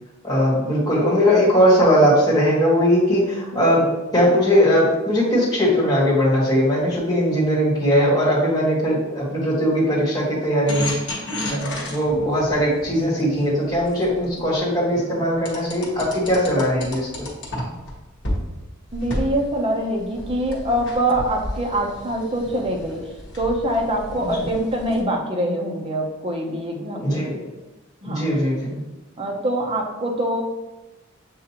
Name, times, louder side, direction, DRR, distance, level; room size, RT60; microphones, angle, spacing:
voice 1, 0.2-3.9 4.1-10.9 11.4-17.3 26.9-27.5 28.0-28.8, equal, 20° left, -7 dB, 1.4 m, -19 dB
sound 1, 10.7-14.6 15.4-17.9 18.2-18.4 18.9-25.0, left 1 dB, 60° left, 1.0 m, -32 dB
voice 2, 18.9-27.2 28.0-28.3 29.2-30.4, right 1 dB, 25° right, 0 dB, 0.6 m, -24 dB
7.0 x 2.5 x 2.9 m, 1.0 s
head